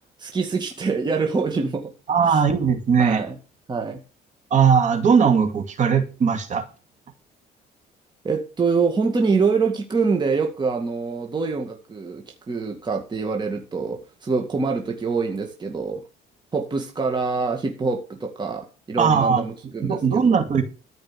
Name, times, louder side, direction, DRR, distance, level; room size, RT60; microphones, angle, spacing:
voice 1, 0.2-1.9 2.2-2.4 3.0-3.4 3.7-4.0 8.2-16.0 16.5-20.3, right 4 dB, 25° right, 3 dB, 2.0 m, -25 dB
voice 2, 2.1-3.2 4.5-6.6 19.0-19.4 19.8-20.6, right 6 dB, 45° right, 6 dB, 2.4 m, -19 dB
13.5 x 5.3 x 7.5 m, 0.33 s
cardioid pair, 110°, 17 cm